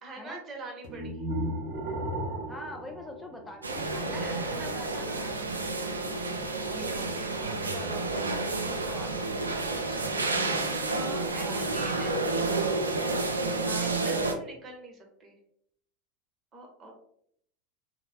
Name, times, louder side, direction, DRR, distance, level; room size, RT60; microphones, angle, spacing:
voice 1, 0.0-1.2 4.1-5.4 6.7-7.9 9.7-10.4 10.9-12.4 13.7-15.4 16.5-16.9, right 2 dB, 30° right, 1 dB, 0.9 m, -45 dB
sound 1, 0.8-4.0, right 1 dB, 60° right, 0.7 m, -35 dB
voice 2, 2.5-5.0 6.7-7.1 7.7-8.3 8.6-9.3 11.4-11.7 13.7-13.9, left 2 dB, 15° left, 2 dB, 0.4 m, -44 dB
sound 2, 3.6-14.3, right 3 dB, 90° right, 0.3 m, -30 dB
2.8 x 2.1 x 2.6 m, 0.68 s
figure-of-eight pair, 85°, 0 cm